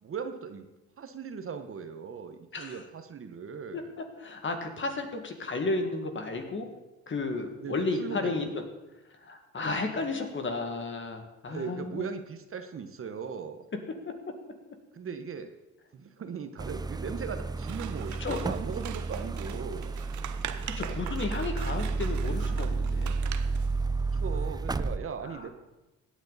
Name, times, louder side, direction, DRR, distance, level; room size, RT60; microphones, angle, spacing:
voice 1, 0.0-0.7 1.0-3.9 7.6-8.6 10.0-10.1 11.5-13.7 14.9-15.6 15.9-20.0 24.2-25.5, right 6 dB, 45° right, 8 dB, 1.1 m, -38 dB
voice 2, 4.2-6.7 7.1-8.4 9.2-12.1 18.2-18.4 20.6-23.1 25.2-25.5, left 3 dB, 40° left, 5 dB, 2.1 m, -33 dB
sound 1, 16.6-25.0, right 4 dB, 15° right, 0.5 m, -31 dB
Scissors, 17.6-23.7, right 11 dB, 75° right, 0.8 m, -43 dB
16.5 x 9.7 x 4.1 m, 1.0 s
cardioid pair, 90°, 30 cm